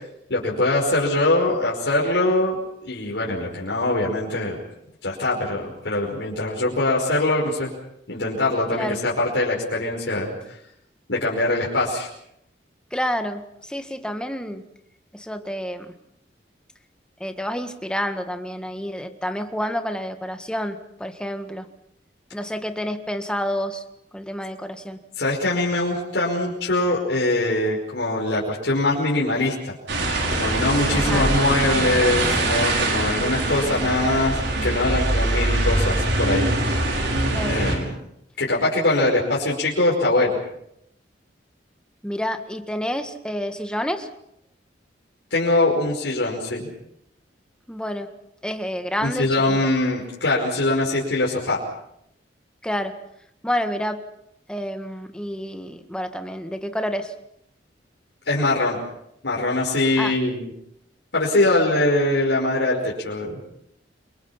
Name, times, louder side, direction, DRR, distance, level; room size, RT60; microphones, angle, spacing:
voice 1, 0.3-2.6 2.8-4.6 5.0-7.7 8.1-10.6 11.1-12.1 25.2-29.8 30.3-36.5 37.5-37.9 38.4-40.3 45.3-46.7 49.0-51.6 58.3-58.8 59.2-60.5 61.1-63.4, left 2 dB, 85° left, -4 dB, 5.4 m, -22 dB
voice 2, 12.9-14.6 15.1-15.9 17.2-21.7 22.3-23.8 24.1-25.0 30.9-31.3 37.3-37.6 42.0-44.1 47.7-48.1 48.4-49.7 52.6-52.9 53.4-54.0 54.5-57.1 60.0-60.2, equal, 5° left, 7 dB, 1.7 m, -29 dB
sound 1, 29.9-37.8, right 2 dB, 75° right, 5.9 m, -23 dB
29.0 x 24.0 x 5.8 m, 0.77 s
head